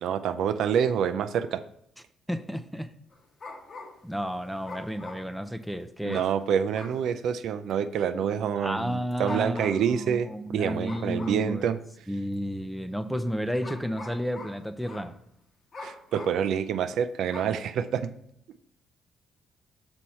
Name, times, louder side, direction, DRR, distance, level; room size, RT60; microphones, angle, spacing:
voice 1, 0.0-1.6 6.0-10.3 10.5-11.8 15.8-18.1, right 8 dB, 75° right, 10 dB, 0.5 m, -27 dB
voice 2, 2.3-2.9 4.0-6.3 8.6-11.7 12.1-15.2, equal, ahead, 10 dB, 0.6 m, -32 dB
sound 1, 3.1-4.1 4.6-5.6 6.1-6.4 6.7-7.1 7.7-7.8 9.1-9.9 10.8-11.5 12.3-12.4 13.6-15.1 15.7-16.5 17.3-17.6, left 3 dB, 45° left, 1.2 m, -43 dB
6.2 x 4.4 x 5.5 m, 0.73 s
cardioid pair, 90°, 0 cm